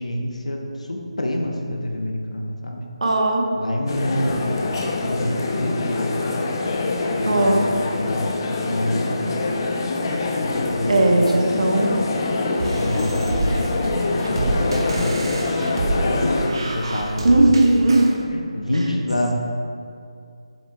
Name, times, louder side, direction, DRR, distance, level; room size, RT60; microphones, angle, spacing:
voice 1, 0.0-2.8 3.6-6.2 7.1-9.3 10.4-11.1 12.7-15.4 15.9-17.5 18.3-19.3, left 1 dB, 85° left, 1 dB, 0.8 m, -27 dB
voice 2, 3.0-3.5 7.3-7.7 10.9-12.1 17.2-18.1 18.7-18.9, right 2 dB, 70° right, 0 dB, 1.1 m, -17 dB
sound 1, 3.9-16.5, left 3 dB, 40° left, 0.6 m, -25 dB
sound 2, 12.6-18.2, right 2 dB, 45° right, 0.9 m, -27 dB
7.5 x 7.1 x 2.3 m, 2.4 s
figure-of-eight pair, 155°, 3 cm